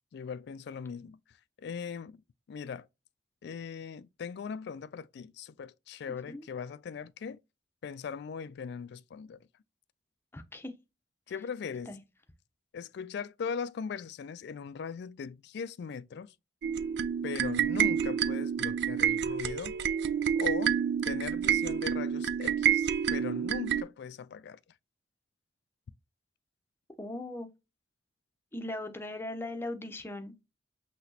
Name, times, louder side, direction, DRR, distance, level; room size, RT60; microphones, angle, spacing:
voice 1, 0.1-2.2 2.5-2.9 3.4-7.4 7.8-9.5 11.3-12.0 12.7-16.3 17.2-19.8 20.4-20.8 21.0-24.6, left 6 dB, 65° left, 0.3 m, -39 dB
voice 2, 10.3-10.7 11.9-12.0 27.0-27.5 28.5-30.3, left 1 dB, 15° left, 0.7 m, -38 dB
sound 1, 16.6-23.8, right 8 dB, 65° right, 0.3 m, -28 dB
5.8 x 2.9 x 2.8 m
head